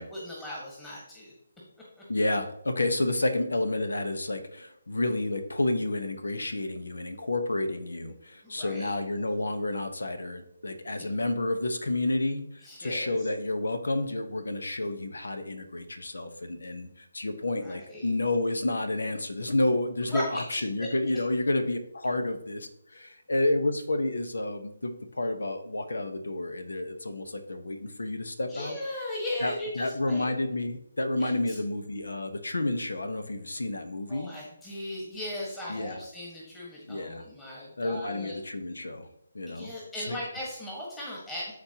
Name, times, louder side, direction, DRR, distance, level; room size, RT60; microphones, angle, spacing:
voice 1, 0.0-1.3 8.4-8.9 12.6-13.1 17.6-18.1 20.1-20.6 28.5-30.3 31.2-31.6 34.1-38.4 39.5-41.5, left 1 dB, 10° left, -6 dB, 1.7 m, -37 dB
voice 2, 2.1-28.8 29.4-34.3 35.7-36.0 36.8-37.3 37.8-39.1 39.3-39.7 40.1-40.2, left 2 dB, 85° left, 8 dB, 1.1 m, -30 dB
12.5 x 4.3 x 2.9 m, 0.79 s
figure-of-eight pair, 155°, 0 cm